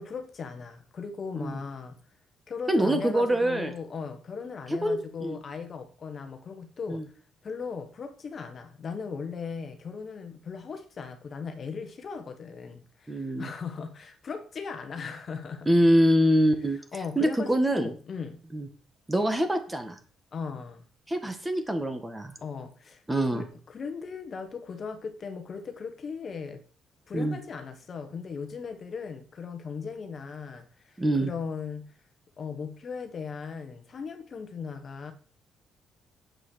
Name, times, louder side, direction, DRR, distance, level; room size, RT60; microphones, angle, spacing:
voice 1, 0.0-2.0 2.5-7.0 7.4-15.7 16.9-18.4 20.3-20.8 22.4-23.0 23.3-26.6 27.1-31.9 32.4-35.1, left 5 dB, 35° left, 1.4 m, -38 dB
voice 2, 2.7-3.7 4.8-5.4 6.9-7.0 13.1-13.5 15.7-16.8 17.2-17.9 18.5-18.7 19.1-20.0 21.1-22.3 23.1-23.4 27.1-27.4 31.0-31.3, right 1 dB, 10° right, 1.6 m, -24 dB
9.8 x 7.9 x 6.4 m
cardioid pair, 155°, 0 cm